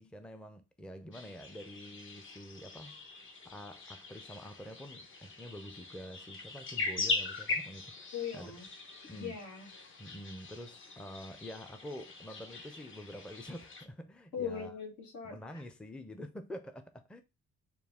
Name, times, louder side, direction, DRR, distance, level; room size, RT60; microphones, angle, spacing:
voice 1, 0.0-3.0 3.4-8.5 9.1-9.4 10.0-14.8 15.2-17.2, equal, 5° left, 0.5 m, -47 dB
sound 1, 1.1-13.9, left 3 dB, 40° left, 0.9 m, -41 dB
voice 2, 8.1-8.7 9.1-9.7 14.3-15.4, left 7 dB, 80° left, 1.8 m, -39 dB
4.5 x 2.4 x 3.5 m
cardioid pair, 90°, 30 cm